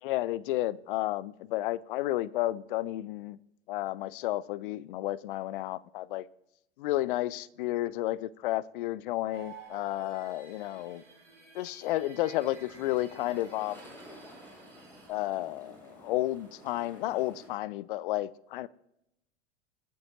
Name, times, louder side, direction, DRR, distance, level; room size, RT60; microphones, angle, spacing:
voice 1, 0.0-3.4 3.7-6.3 6.8-11.0 11.5-13.8 15.1-18.7, left 16 dB, 50° left, 0.5 m, -32 dB
sound 1, 9.3-15.1, right 5 dB, 90° right, 2.7 m, -53 dB
sound 2, 12.4-17.5, equal, 5° left, 6.2 m, -52 dB
24.5 x 9.2 x 2.8 m
figure-of-eight pair, 85°, 35 cm